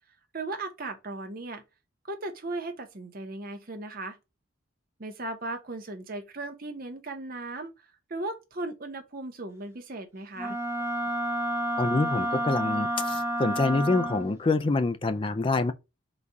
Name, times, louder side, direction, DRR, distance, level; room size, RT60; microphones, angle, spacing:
voice 1, 0.3-1.6 2.0-4.2 5.0-10.6, right 2 dB, 45° right, 0.8 m, -37 dB
Wind instrument woodwind instrument, 10.4-14.4, right 1 dB, 10° right, 0.8 m, -30 dB
voice 2, 11.8-15.7, left 3 dB, 25° left, 0.3 m, -26 dB
4.0 x 2.3 x 4.6 m
head